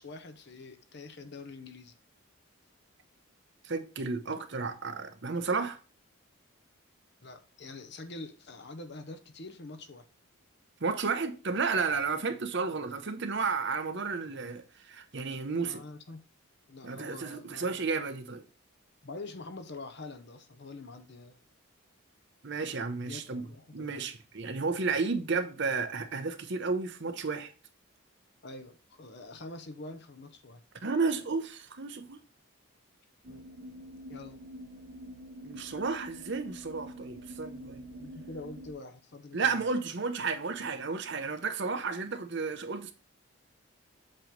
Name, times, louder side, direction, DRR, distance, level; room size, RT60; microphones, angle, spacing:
voice 1, 0.0-2.0 7.2-10.1 15.6-16.2 16.7-17.8 19.0-21.4 23.0-24.0 28.4-30.6 33.3-33.4 34.1-34.4 38.0-39.6, left 2 dB, 50° left, 0.7 m, -45 dB
voice 2, 3.6-5.8 10.8-15.8 16.8-18.4 22.4-23.5 23.7-27.5 30.8-32.2 35.4-37.8 39.3-42.9, right 4 dB, 55° right, 0.8 m, -32 dB
sound 1, 33.2-38.7, right 1 dB, 75° right, 1.0 m, -46 dB
7.6 x 3.1 x 5.1 m
head